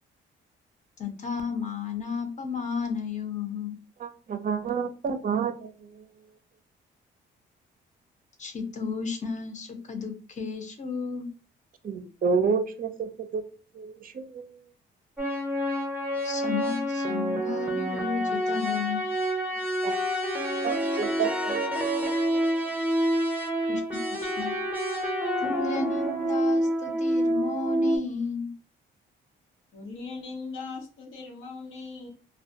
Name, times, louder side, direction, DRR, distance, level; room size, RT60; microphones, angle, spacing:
voice 1, 1.0-3.8 8.4-11.3 16.2-19.0 23.7-24.6 25.4-28.5, left 5 dB, 35° left, 6 dB, 0.7 m, -33 dB
voice 2, 4.0-6.0 11.8-13.4 13.8-14.5 19.8-19.9 20.6-21.6, right 5 dB, 45° right, 8 dB, 0.4 m, -29 dB
sound 1, 15.2-28.0, equal, 10° right, 0.7 m, -27 dB
voice 3, 29.7-32.1, left 4 dB, 90° left, 0 dB, 0.9 m, -39 dB
2.2 x 2.1 x 2.7 m, 0.38 s
cardioid pair, 90°, 20 cm